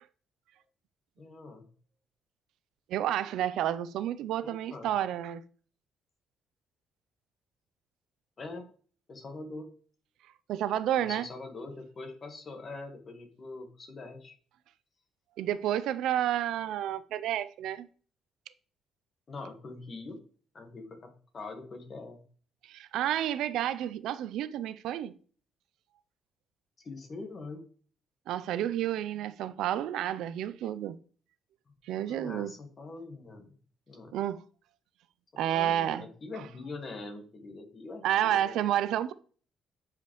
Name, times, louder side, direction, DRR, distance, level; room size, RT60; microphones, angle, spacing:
voice 1, 1.2-1.7 4.4-4.9 8.4-8.7 9.1-9.7 11.0-14.3 19.3-20.2 20.5-22.2 26.8-27.6 32.1-33.5 33.9-34.2 35.3-38.6, left 3 dB, 30° left, 1.5 m, -43 dB
voice 2, 2.9-5.4 10.5-11.3 15.4-17.9 22.6-25.1 28.3-31.0 31.9-32.5 34.1-34.4 35.4-36.1 38.0-39.1, right 11 dB, 75° right, 0.4 m, -30 dB
9.7 x 5.0 x 3.1 m
cardioid pair, 160°, 0 cm